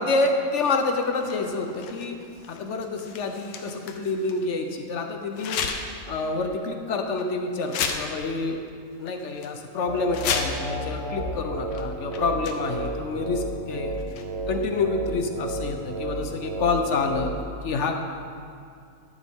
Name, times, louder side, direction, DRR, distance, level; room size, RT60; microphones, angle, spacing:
voice 1, 0.0-2.2 2.5-5.7 6.1-8.6 9.0-14.0 14.5-17.3 17.6-18.0, left 3 dB, 60° left, 5 dB, 0.9 m, -27 dB
sound 1, 0.6-4.5 5.3-6.0 6.4-6.6 7.2-7.3 7.6-8.4 8.7-8.8 9.1-9.5 10.0-10.8 11.7-11.8 12.1-12.9 13.9-14.5, left 6 dB, 85° left, 1.3 m, -33 dB
sound 2, 9.9-17.4, right 1 dB, 25° right, 0.8 m, -32 dB
13.0 x 7.3 x 3.6 m, 2.3 s
omnidirectional pair, 1.6 m